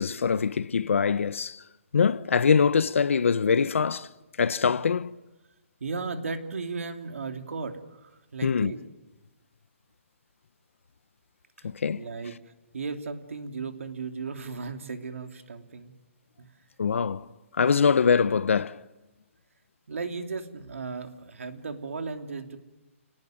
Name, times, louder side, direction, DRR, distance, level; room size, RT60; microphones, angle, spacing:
voice 1, 0.0-1.6 1.9-4.1 4.4-5.1 8.4-8.7 11.6-12.0 16.8-17.2 17.6-18.8, left 6 dB, 70° left, 0.9 m, -23 dB
voice 2, 5.8-8.8 12.0-12.3 12.7-15.9 16.4-16.5 19.9-22.6, right 4 dB, 70° right, 3.0 m, -35 dB
29.5 x 19.5 x 9.4 m
hypercardioid pair, 180°, 7 cm